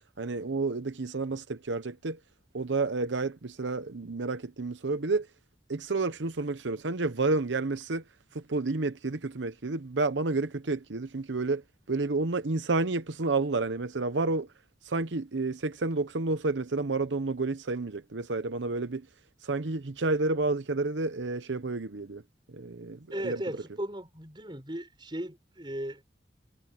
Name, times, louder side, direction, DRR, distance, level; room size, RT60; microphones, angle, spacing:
voice 1, 0.2-2.2 2.5-5.3 5.7-8.0 8.3-11.6 11.9-14.5 14.8-19.1 19.4-22.2 22.5-23.4, right 3 dB, 90° right, 0.9 m, -30 dB
voice 2, 23.1-26.0, right 1 dB, 25° right, 6.5 m, -36 dB
head